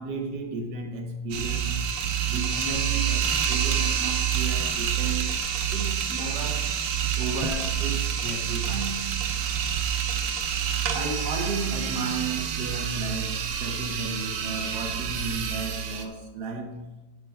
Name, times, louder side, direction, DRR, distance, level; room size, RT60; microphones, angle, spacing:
voice 1, 0.0-2.0 2.3-5.4 5.7-6.7 7.1-9.3 10.9-17.0, right 3 dB, 60° right, 1.5 m, -34 dB
sound 1, 1.3-16.1, right 8 dB, 80° right, 1.4 m, -27 dB
6.6 x 6.0 x 5.5 m
omnidirectional pair, 2.1 m